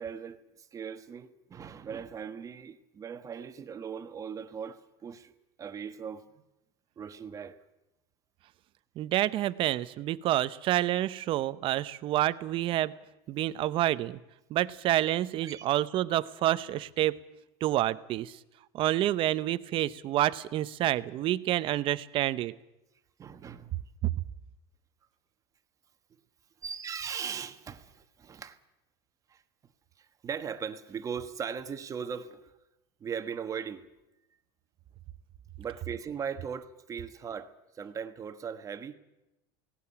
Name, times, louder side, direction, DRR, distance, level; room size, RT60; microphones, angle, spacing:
voice 1, 0.0-6.4 7.0-7.6 15.4-15.6 23.2-23.8 26.6-28.6 29.3-29.4 30.0-32.5 33.0-33.8 35.6-38.9, right 7 dB, 25° right, 1.3 m, -39 dB
voice 2, 9.0-12.9 13.3-14.2 14.5-17.2 17.6-18.4 18.7-22.5, right 14 dB, 45° right, 0.8 m, -28 dB
17.5 x 17.5 x 9.9 m
supercardioid pair, 135°, 13 cm